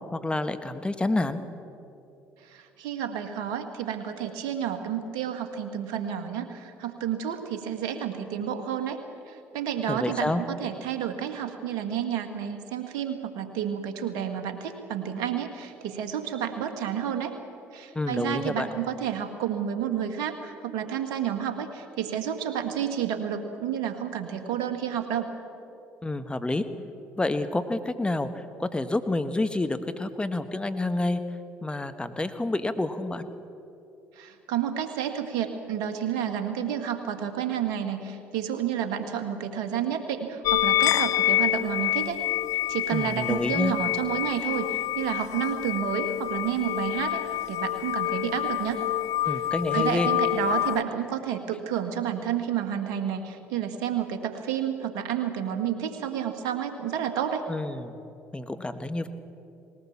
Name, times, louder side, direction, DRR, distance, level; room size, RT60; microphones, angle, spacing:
voice 1, 0.1-1.4 9.9-10.4 17.9-18.7 26.0-26.6 27.2-28.3 28.6-31.2 31.6-33.2 42.9-43.7 49.2-50.1 57.5-57.9 58.3-59.1, left 2 dB, 15° left, 10 dB, 1.4 m, -28 dB
voice 2, 2.5-9.0 9.3-17.3 17.7-25.3 34.2-42.2 42.7-47.2 47.5-48.8 49.3-49.4 49.7-57.5, right 9 dB, 75° right, 7 dB, 1.8 m, -30 dB
sound 1, 40.4-50.8, left 14 dB, 65° left, 0.4 m, -27 dB
20.0 x 18.0 x 7.3 m, 2.9 s
hypercardioid pair, 60°, 6 cm